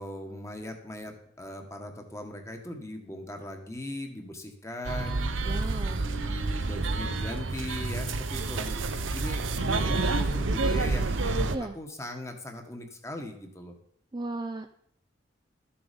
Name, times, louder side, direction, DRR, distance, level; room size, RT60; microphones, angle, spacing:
voice 1, 0.0-5.3 6.0-13.7, left 1 dB, 15° left, 4 dB, 1.5 m, -39 dB
sound 1, 4.8-11.6, right 3 dB, 90° right, 0.8 m, -29 dB
voice 2, 5.5-6.0 11.5-11.7 14.1-14.7, right 2 dB, 25° right, 6 dB, 0.5 m, -35 dB
13.0 x 7.1 x 5.3 m, 0.67 s
head